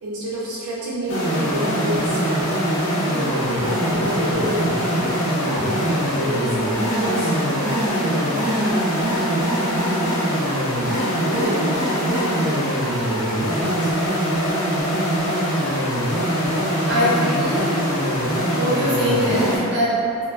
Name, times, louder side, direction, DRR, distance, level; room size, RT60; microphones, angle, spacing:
voice 1, 0.0-2.5 2.9-4.7 5.4-7.5 8.0-9.5 10.8-14.3, right 1 dB, 90° right, -6 dB, 0.4 m, -30 dB
sound 1, 1.1-19.6, equal, 75° left, 0.9 m, -22 dB
voice 2, 16.9-17.8 18.5-20.2, equal, 50° right, -10 dB, 0.9 m, -22 dB
2.8 x 2.3 x 2.4 m, 2.6 s
head